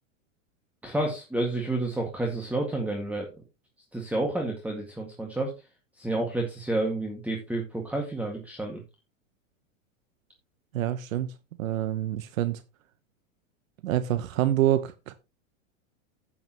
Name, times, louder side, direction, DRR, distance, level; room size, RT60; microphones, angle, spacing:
voice 1, 0.8-3.3 3.9-5.5 6.0-8.8, right 2 dB, 5° right, 1.9 m, -30 dB
voice 2, 10.7-11.3 11.6-12.6 13.8-15.1, right 12 dB, 75° right, 1.0 m, -26 dB
11.0 x 8.7 x 3.0 m
hypercardioid pair, 120°, 40 cm